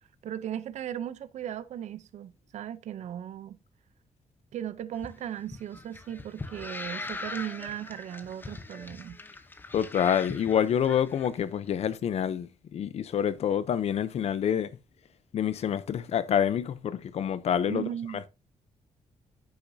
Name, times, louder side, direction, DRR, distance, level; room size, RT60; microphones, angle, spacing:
voice 1, 0.2-3.6 4.5-9.2 17.7-18.2, right 10 dB, 65° right, 0.5 m, -37 dB
sound 1, 4.9-11.3, left 3 dB, 15° left, 0.8 m, -41 dB
voice 2, 9.7-14.7 15.3-17.8, left 9 dB, 55° left, 0.6 m, -27 dB
9.7 x 7.0 x 2.6 m
wide cardioid pair, 170°, 13 cm